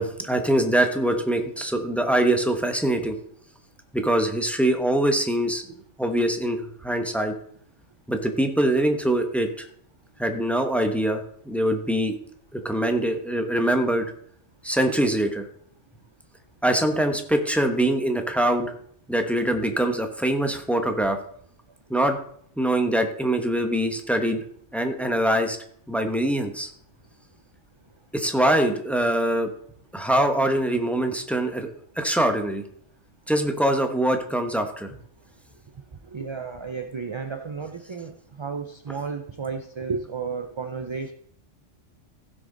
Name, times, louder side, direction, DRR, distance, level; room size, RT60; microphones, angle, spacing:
voice 1, 0.0-3.2 3.9-5.6 6.0-7.3 8.1-9.5 10.2-12.2 12.5-14.1 14.6-15.4 16.6-18.7 19.1-21.2 21.9-22.2 22.6-24.4 24.7-25.6 25.9-26.7 28.1-29.5 29.9-31.7 32.0-32.6 33.3-34.9, right 1 dB, ahead, 6 dB, 0.9 m, -23 dB
voice 2, 36.0-41.1, right 5 dB, 40° right, 6 dB, 0.4 m, -33 dB
15.5 x 6.4 x 3.9 m, 0.62 s
omnidirectional pair, 1.3 m